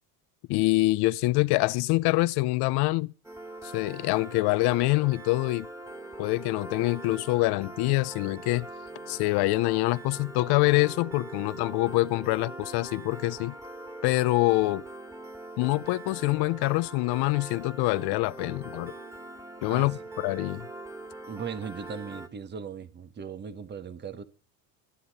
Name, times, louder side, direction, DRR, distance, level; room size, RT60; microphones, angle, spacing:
voice 1, 0.5-3.1 3.6-5.7 6.2-8.7 9.1-13.5 14.0-14.8 15.6-18.9 19.6-20.7, left 21 dB, 70° left, 0.7 m, -25 dB
Piano, 3.2-22.3, right 2 dB, 5° right, 2.4 m, -42 dB
voice 2, 21.3-24.2, right 6 dB, 25° right, 1.1 m, -38 dB
16.5 x 9.8 x 4.2 m
supercardioid pair, 105°, 40 cm